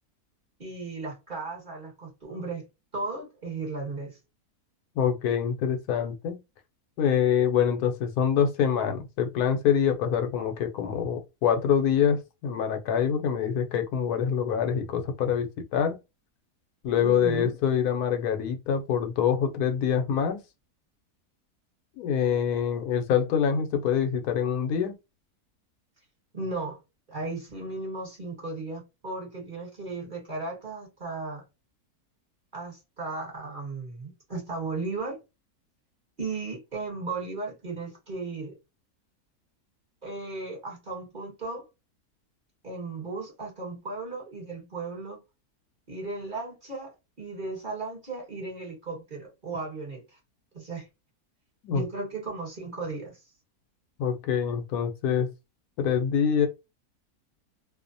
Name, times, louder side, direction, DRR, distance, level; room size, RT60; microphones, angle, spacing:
voice 1, 0.6-2.7 2.9-4.2 17.0-17.5 26.3-26.8 27.1-31.4 32.5-35.2 36.2-38.6 40.0-41.6 42.6-45.2 45.9-50.2 50.5-50.9 51.7-53.2, right 3 dB, 35° right, 1.2 m, -35 dB
voice 2, 5.0-6.4 7.0-16.0 16.8-20.4 22.0-24.9 51.6-51.8 54.0-55.3 55.8-56.5, left 8 dB, 80° left, 1.1 m, -25 dB
2.6 x 2.0 x 2.6 m
omnidirectional pair, 1.6 m